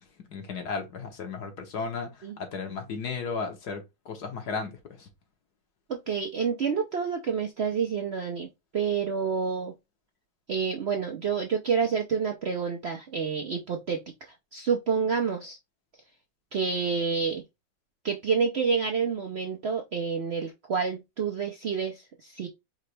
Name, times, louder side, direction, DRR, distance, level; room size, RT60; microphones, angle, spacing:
voice 1, 0.3-5.1, left 5 dB, 65° left, 1.6 m, -35 dB
voice 2, 5.9-9.7 10.5-15.6 16.5-17.4 18.0-22.5, right 6 dB, 60° right, 0.7 m, -28 dB
5.0 x 3.2 x 3.3 m
omnidirectional pair, 1.9 m